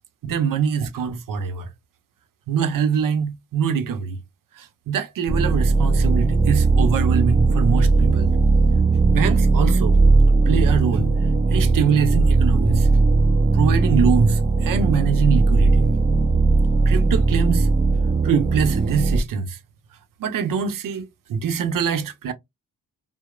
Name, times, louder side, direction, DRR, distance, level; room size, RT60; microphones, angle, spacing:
voice 1, 0.2-1.7 2.5-4.2 4.6-8.3 9.0-10.0 10.5-11.1 11.5-12.9 13.5-15.9 16.9-17.7 18.2-19.6 20.2-22.3, right 6 dB, 65° right, 0.7 m, -24 dB
sound 1, 5.3-19.2, right 3 dB, 20° right, 0.5 m, -18 dB
2.8 x 2.0 x 2.2 m
cardioid pair, 60°, 35 cm